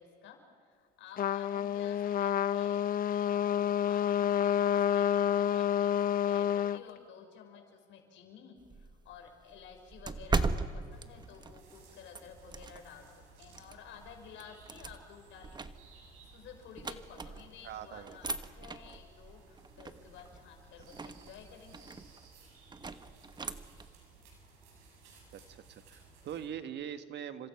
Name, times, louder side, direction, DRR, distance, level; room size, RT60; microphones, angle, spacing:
voice 1, 0.0-15.8 16.2-21.9, left 7 dB, 70° left, 3 dB, 5.9 m, -53 dB
Trumpet, 1.2-6.8, left 10 dB, 45° left, 0.6 m, -29 dB
sound 1, 8.6-13.1 13.5-17.7 18.0-23.9, right 3 dB, 20° right, 1.2 m, -39 dB
sound 2, 10.9-26.5, right 4 dB, 85° right, 7.4 m, -58 dB
voice 2, 17.6-18.2 25.3-27.5, right 9 dB, 60° right, 10 dB, 1.5 m, -42 dB
30.0 x 26.0 x 5.9 m, 2.1 s
supercardioid pair, 95°, 21 cm